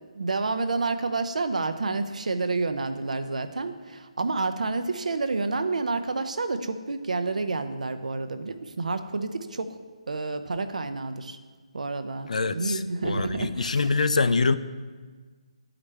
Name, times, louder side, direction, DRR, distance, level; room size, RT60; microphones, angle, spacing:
voice 1, 0.1-9.8 10.1-11.4 11.7-13.9, right 3 dB, 85° right, 9 dB, 0.6 m, -29 dB
voice 2, 12.3-14.6, left 4 dB, 80° left, 13 dB, 0.4 m, -25 dB
11.5 x 4.9 x 3.3 m, 1.4 s
hypercardioid pair, 175°, 4 cm